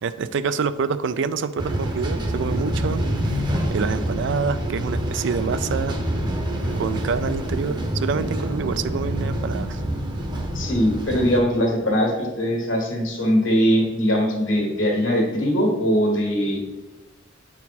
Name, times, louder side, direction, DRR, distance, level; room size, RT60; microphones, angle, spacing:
voice 1, 0.0-3.4 3.7-6.0 6.8-9.8, right 5 dB, 65° right, 14 dB, 0.4 m, -27 dB
sound 1, 1.6-11.4, right 1 dB, 25° right, 0.8 m, -26 dB
voice 2, 10.5-16.6, equal, 75° left, 1 dB, 1.6 m, -21 dB
8.1 x 4.4 x 4.2 m, 1.1 s
head